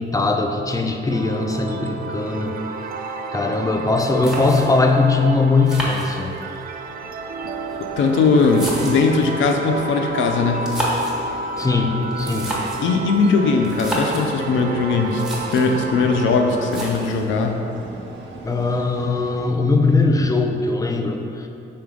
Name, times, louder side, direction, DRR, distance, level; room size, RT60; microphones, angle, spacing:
voice 1, 0.0-2.6 3.3-6.3 11.6-12.6 18.4-21.5, left 3 dB, 15° left, 4 dB, 0.5 m, -20 dB
sound 1, 1.1-16.9, right 3 dB, 50° right, 0.4 m, -31 dB
sound 2, 4.2-4.9 5.7-6.6 7.5-9.2 10.5-11.2 12.1-12.9 13.6-14.3 14.8-14.9 15.1-15.8 16.7-17.3, right 1 dB, 5° right, 1.4 m, -29 dB
sound 3, 6.6-19.5, right 2 dB, 75° right, 1.0 m, -40 dB
voice 2, 7.8-10.7 12.8-15.2 15.5-17.6, left 4 dB, 75° left, 4 dB, 0.5 m, -19 dB
5.7 x 3.5 x 5.1 m, 2.7 s
cardioid pair, 90°, 20 cm